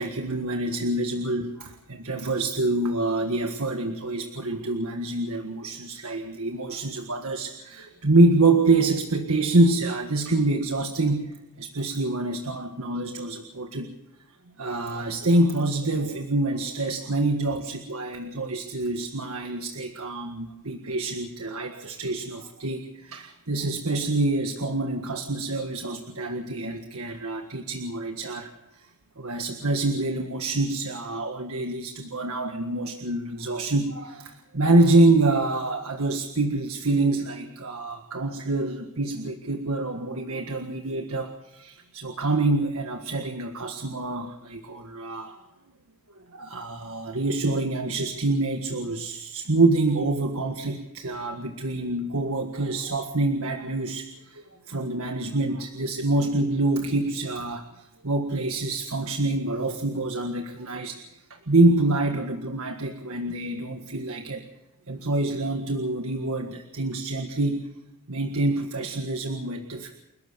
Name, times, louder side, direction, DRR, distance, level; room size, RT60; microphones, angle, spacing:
voice 1, 0.0-13.9 14.6-28.5 29.2-45.4 46.3-61.0 61.3-64.4 64.9-67.7 68.1-69.9, right 2 dB, 70° right, 4 dB, 1.7 m, -26 dB
29.5 x 13.0 x 6.8 m, 0.93 s
head